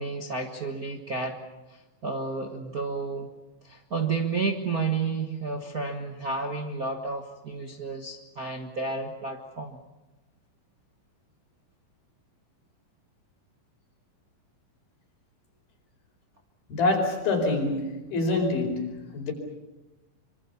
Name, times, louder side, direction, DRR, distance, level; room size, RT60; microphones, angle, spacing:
voice 1, 0.0-1.4 2.0-3.3 3.6-9.8, right 4 dB, 50° right, 1.1 m, -31 dB
voice 2, 16.7-19.3, left 2 dB, 90° left, 6.6 m, -26 dB
25.0 x 24.5 x 7.1 m
omnidirectional pair, 4.1 m